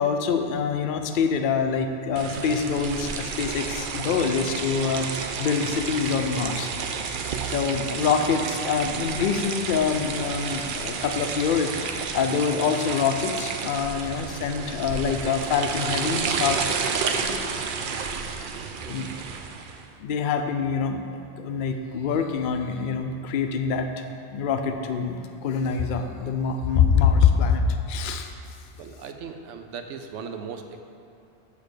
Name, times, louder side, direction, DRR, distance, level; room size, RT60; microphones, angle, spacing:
voice 1, 0.0-7.0 7.5-16.7 17.0-17.4 18.8-19.1 20.0-23.9 24.3-28.3, left 6 dB, 60° left, 6 dB, 0.6 m, -25 dB
sound 1, 2.2-19.8, right 5 dB, 60° right, 0.6 m, -31 dB
voice 2, 28.8-30.8, right 6 dB, 80° right, 6 dB, 0.9 m, -37 dB
8.3 x 3.3 x 6.4 m, 2.7 s
omnidirectional pair, 1.2 m